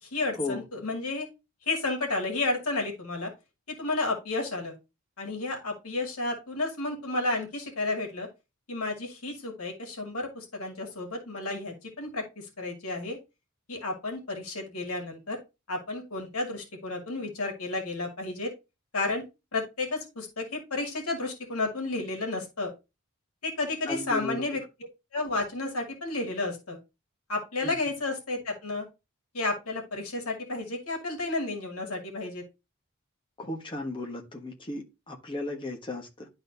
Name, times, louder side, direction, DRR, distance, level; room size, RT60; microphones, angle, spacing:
voice 1, 0.0-1.3 1.6-3.3 3.8-4.7 5.2-8.3 8.7-13.2 13.7-15.4 15.7-18.5 18.9-19.2 19.5-22.7 23.4-24.6 25.1-26.8 27.3-28.9 29.3-32.4, left 2 dB, 75° left, 2.3 m, -32 dB
voice 2, 23.9-24.4 27.6-27.7 33.4-36.3, left 2 dB, 25° left, 1.3 m, -35 dB
11.5 x 4.0 x 2.7 m
head